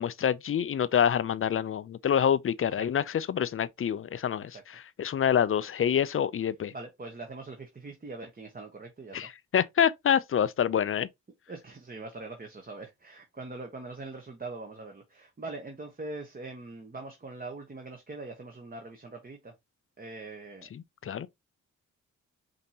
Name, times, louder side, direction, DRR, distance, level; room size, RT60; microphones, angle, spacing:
voice 1, 0.0-6.7 9.1-11.1 21.0-21.3, left 8 dB, 45° left, 0.4 m, -27 dB
voice 2, 6.7-9.3 11.5-19.5 20.0-20.7, right 3 dB, 30° right, 1.0 m, -42 dB
5.2 x 2.8 x 2.7 m
cardioid pair, 70°, 32 cm